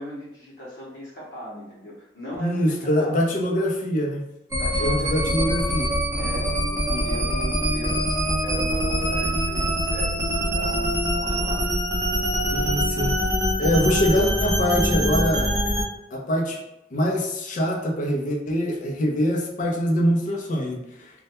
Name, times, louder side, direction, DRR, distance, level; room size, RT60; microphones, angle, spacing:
voice 1, 0.0-3.2 4.6-5.5 6.2-11.6, equal, 80° left, -7 dB, 0.7 m, -38 dB
voice 2, 2.4-4.2 4.8-5.9 6.9-7.0 12.5-13.2 13.6-15.6 16.1-16.6 16.9-21.1, equal, 45° left, 1 dB, 0.4 m, -24 dB
sound 1, 4.5-15.8, equal, 20° right, 0.6 m, -24 dB
2.1 x 2.1 x 2.8 m, 0.86 s
head